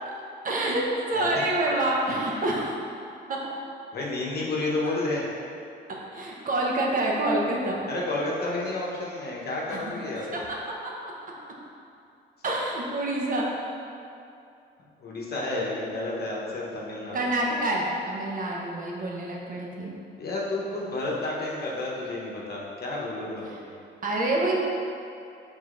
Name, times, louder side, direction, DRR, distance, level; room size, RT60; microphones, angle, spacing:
voice 1, 0.4-2.8 3.3-3.5 5.9-7.8 9.7-9.8 10.3-11.1 12.4-13.5 17.1-19.9 23.5-23.6 24.0-24.5, right 1 dB, 45° right, -2 dB, 0.8 m, -27 dB
voice 2, 3.9-5.2 7.9-10.3 15.0-17.3 20.2-23.7, left 2 dB, 50° left, -4 dB, 0.9 m, -31 dB
4.8 x 4.0 x 2.5 m, 2.5 s
cardioid pair, 90°, 20 cm